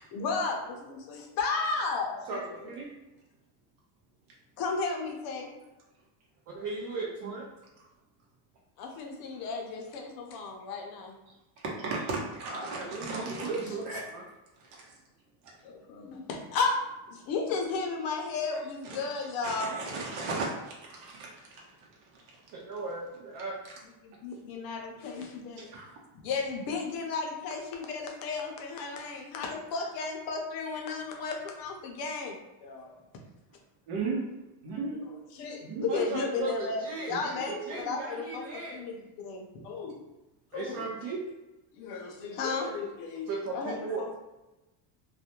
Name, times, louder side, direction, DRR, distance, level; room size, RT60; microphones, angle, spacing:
voice 1, 0.1-2.8 4.6-5.5 8.8-11.2 13.4-13.8 15.6-16.7 17.1-19.8 24.0-25.7 26.2-32.9 34.7-34.9 35.3-38.4 38.7-40.0 40.5-40.9 41.7-44.2, left 4 dB, 55° left, 2 dB, 0.5 m, -34 dB
voice 2, 1.5-1.8 11.3-13.6 14.6-14.9 18.5-19.0 19.4-21.9 22.1-22.2 25.6-25.9 32.8-32.9 33.9-34.2 34.6-35.1 35.6-36.1 37.1-37.2 37.5-37.6 42.0-42.1 42.6-42.7, right 3 dB, 75° right, -3 dB, 0.9 m, -37 dB
voice 3, 2.3-2.9 6.5-7.5 12.4-14.2 22.5-23.5 35.9-38.8 40.5-41.2 43.3-44.2, right 3 dB, 45° right, -5 dB, 0.5 m, -36 dB
2.4 x 2.1 x 2.8 m, 1.0 s
cardioid pair, 165°, 44 cm